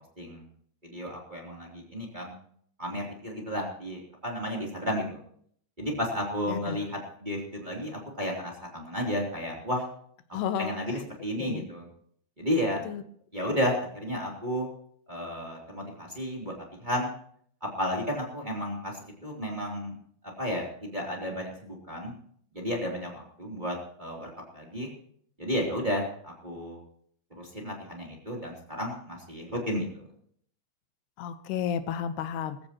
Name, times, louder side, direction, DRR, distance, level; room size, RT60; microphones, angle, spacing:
voice 1, 0.8-2.3 2.8-5.2 5.8-9.9 10.6-11.9 12.4-12.8 13.3-14.7 15.1-16.5 16.8-17.1 17.8-20.0 20.4-22.1 22.5-24.9 25.4-26.8 27.4-30.0, equal, 15° right, -1 dB, 2.5 m, -32 dB
voice 2, 10.3-11.0 11.4-11.7 12.9-13.0 31.2-32.6, left 8 dB, 85° left, 11 dB, 3.0 m, -32 dB
20.5 x 15.5 x 3.0 m, 0.62 s
omnidirectional pair, 4.6 m